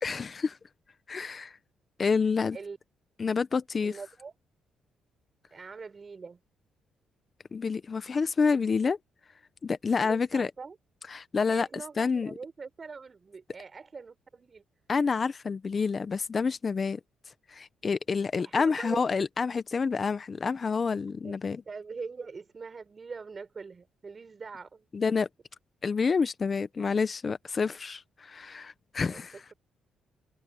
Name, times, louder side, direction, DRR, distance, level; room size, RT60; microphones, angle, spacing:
voice 1, 0.0-0.6 1.1-1.6 2.0-2.6 3.2-4.0 7.5-9.0 9.6-10.5 11.1-11.7 12.0-12.3 14.9-17.0 17.5-21.6 24.9-25.3 25.8-29.4, left 5 dB, 35° left, 0.9 m, -28 dB
voice 2, 3.8-4.3 5.5-6.4 10.0-10.7 11.5-14.6 18.4-19.0 21.2-21.3 21.7-24.9 29.0-29.2, right 4 dB, 35° right, 6.4 m, -42 dB
open air
cardioid pair, 90°, 0 cm